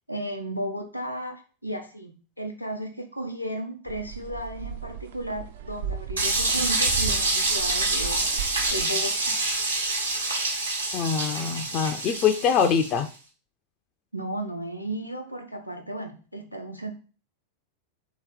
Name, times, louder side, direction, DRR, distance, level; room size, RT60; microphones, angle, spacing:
voice 1, 0.1-8.3 8.7-9.4 14.1-16.9, right 1 dB, 90° left, 5 dB, 0.7 m, -34 dB
sound 1, 3.9-8.9, right 7 dB, 60° right, 0.4 m, -36 dB
sound 2, 6.2-13.0, right 2 dB, 75° right, 1.0 m, -26 dB
voice 2, 10.9-13.1, left 7 dB, 35° left, 7 dB, 0.4 m, -24 dB
3.3 x 2.9 x 4.6 m, 0.37 s
figure-of-eight pair, 90°, 0 cm